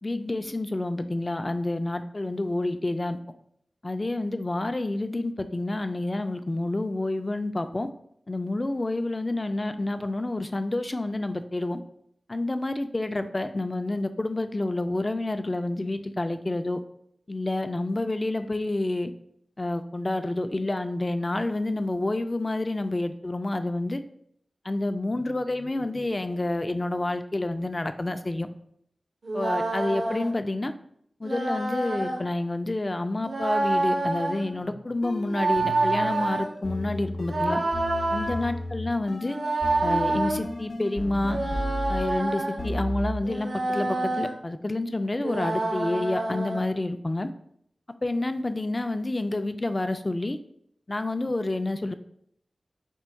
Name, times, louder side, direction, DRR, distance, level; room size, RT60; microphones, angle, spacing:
voice 1, 0.0-3.2 3.8-7.9 8.3-11.8 12.3-16.8 17.3-19.1 19.6-24.0 24.6-28.5 29.3-30.7 31.2-37.6 38.1-39.4 39.8-41.4 41.9-47.3 48.0-50.4 50.9-51.9, left 2 dB, 35° left, 9 dB, 0.4 m, -29 dB
sound 1, 29.2-30.3 31.2-32.2 33.2-34.5 35.2-36.5 37.3-38.3 39.2-40.4 41.2-42.6 43.2-44.3 45.2-46.6, right 2 dB, 85° right, 0.9 m, -27 dB
sound 2, 34.6-42.2 42.6-43.3, left 1 dB, 85° left, 0.6 m, -34 dB
4.4 x 2.2 x 4.4 m, 0.69 s
wide cardioid pair, 55°, 0 cm